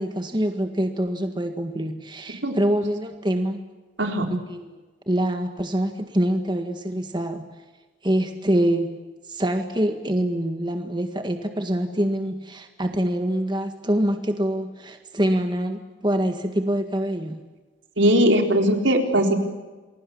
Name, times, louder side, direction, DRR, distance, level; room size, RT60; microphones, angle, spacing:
voice 1, 0.0-3.6 4.3-4.8 5.1-7.4 8.0-8.9 9.3-17.4, right 1 dB, 25° right, 6 dB, 1.8 m, -25 dB
voice 2, 18.0-19.4, equal, 80° right, 3 dB, 4.2 m, -19 dB
28.5 x 22.5 x 7.3 m, 1.2 s
head